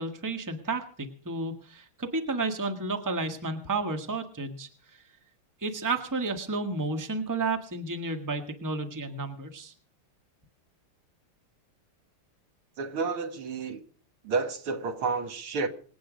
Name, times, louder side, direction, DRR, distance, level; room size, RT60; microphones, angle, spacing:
voice 1, 0.0-5.0 5.6-9.7, right 3 dB, 10° right, 1.4 m, -32 dB
voice 2, 12.8-13.8 14.2-15.7, right 4 dB, 75° right, 2.4 m, -30 dB
26.0 x 8.7 x 5.1 m
omnidirectional pair, 2.4 m